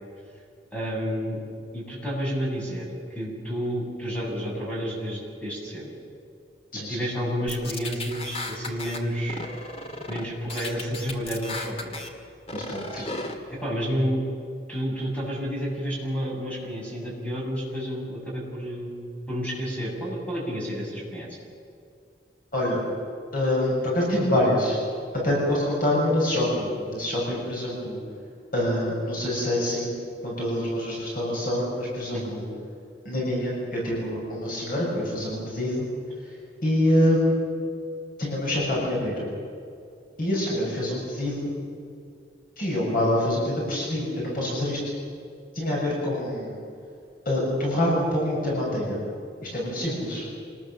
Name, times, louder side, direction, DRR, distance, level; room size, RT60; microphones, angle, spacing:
voice 1, 0.7-1.4 1.7-2.9 3.1-5.9 6.7-9.4 10.1-12.0 13.0-13.1 13.5-14.3 14.7-19.0 19.3-21.3 32.1-32.4, equal, 5° left, -4 dB, 7.3 m, -30 dB
sound 1, 7.5-9.0 9.3-10.2 10.5-12.1 12.5-13.3, left 2 dB, 35° left, 2.1 m, -35 dB
voice 2, 12.5-13.1 22.5-22.8 23.3-24.8 25.1-28.0 28.5-29.9 30.2-32.4 33.1-35.9 36.6-37.4 38.2-39.3 40.2-41.5 42.6-44.9 45.5-46.5 47.3-49.0 49.4-50.3, left 1 dB, 50° left, -4 dB, 7.2 m, -25 dB
26.5 x 20.0 x 7.5 m, 2.4 s
head